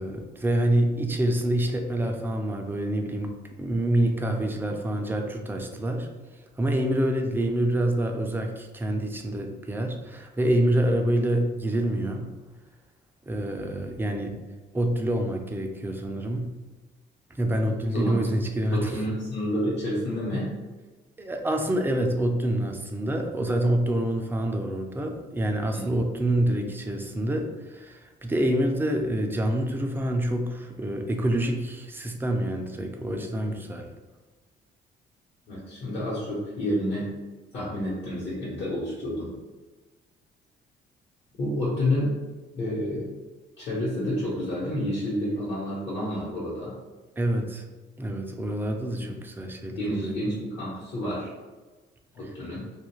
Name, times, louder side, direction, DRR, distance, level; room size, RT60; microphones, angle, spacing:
voice 1, 0.0-3.3 3.6-6.1 6.6-12.2 13.3-14.4 14.7-16.5 17.3-18.9 21.2-33.9 47.2-47.6 48.0-50.2, right 1 dB, 10° right, 3 dB, 0.4 m, -26 dB
voice 2, 17.9-18.3 18.7-20.5 25.7-26.4 35.5-37.1 37.5-39.3 41.4-42.1 42.5-43.1 43.6-46.7 49.0-49.1 49.7-51.3 52.1-52.6, left 1 dB, 60° left, -10 dB, 1.1 m, -29 dB
2.4 x 2.2 x 3.0 m, 1.3 s
cardioid pair, 90°, 20 cm